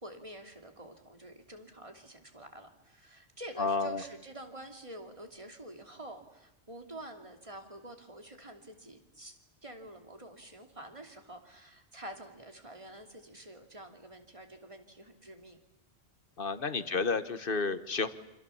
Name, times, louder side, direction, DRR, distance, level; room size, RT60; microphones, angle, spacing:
voice 1, 0.0-15.6 16.7-17.1, right 1 dB, 30° right, 4 dB, 2.9 m, -48 dB
voice 2, 3.6-4.0 16.4-18.1, left 4 dB, 55° left, 12 dB, 1.5 m, -31 dB
28.5 x 27.0 x 7.1 m, 0.90 s
omnidirectional pair, 1.1 m